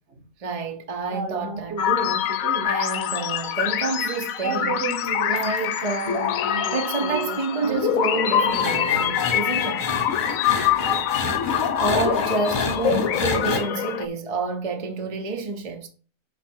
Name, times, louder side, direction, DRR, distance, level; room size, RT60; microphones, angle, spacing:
voice 1, 0.4-2.2 2.6-4.7 5.3-6.4 6.7-9.9 11.8-15.9, right 4 dB, 30° right, 0.8 m, -28 dB
voice 2, 1.1-2.7 4.4-8.0 8.3-9.2, right 4 dB, 50° right, 1.2 m, -33 dB
sound 1, 1.8-14.1, left 9 dB, 70° left, 1.0 m, -25 dB
sound 2, 8.5-13.6, left 3 dB, 35° left, 1.3 m, -29 dB
5.6 x 5.2 x 4.5 m
omnidirectional pair, 1.6 m